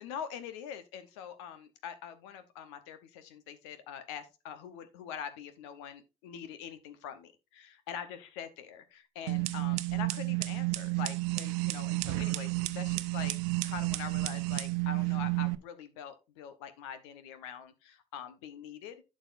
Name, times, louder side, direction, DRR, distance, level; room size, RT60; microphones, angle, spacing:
voice 1, 0.0-13.4 13.6-19.0, left 8 dB, 80° left, 10 dB, 0.9 m, -44 dB
sound 1, 9.3-15.5, right 23 dB, 75° right, 0.5 m, -31 dB
11.0 x 6.3 x 2.5 m, 0.27 s
hypercardioid pair, 45°, 15 cm